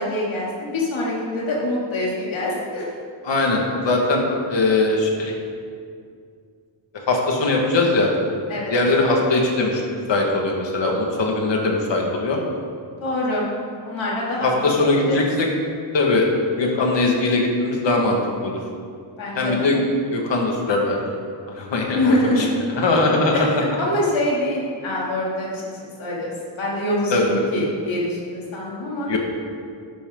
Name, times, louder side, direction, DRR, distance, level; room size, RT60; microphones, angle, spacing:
voice 1, 0.0-2.9 8.5-8.7 13.0-13.5 13.8-14.7 15.1-15.2 19.2-19.7 21.9-22.6 23.3-29.2, left 1 dB, 90° left, -5 dB, 3.2 m, -25 dB
voice 2, 3.2-4.2 4.5-5.3 7.1-8.1 8.7-9.8 10.1-12.4 14.4-15.5 15.9-16.3 16.6-18.6 19.4-19.8 20.1-21.0 21.5-22.5 22.8-23.6 27.1-27.5 29.1-29.2, left 2 dB, 70° left, 0 dB, 2.1 m, -20 dB
12.0 x 11.5 x 4.0 m, 2.2 s
wide cardioid pair, 155°, 46 cm